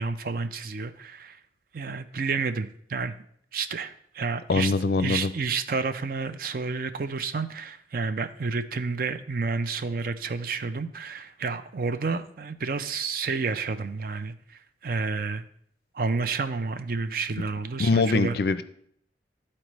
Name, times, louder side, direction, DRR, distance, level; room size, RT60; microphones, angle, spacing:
voice 1, 0.0-1.4 1.7-3.2 3.5-4.7 5.0-15.4 15.9-18.4, right 4 dB, 50° right, 11 dB, 0.4 m, -30 dB
voice 2, 4.5-5.3 17.8-18.6, left 3 dB, 55° left, 13 dB, 0.4 m, -23 dB
13.0 x 4.3 x 3.1 m, 0.66 s
head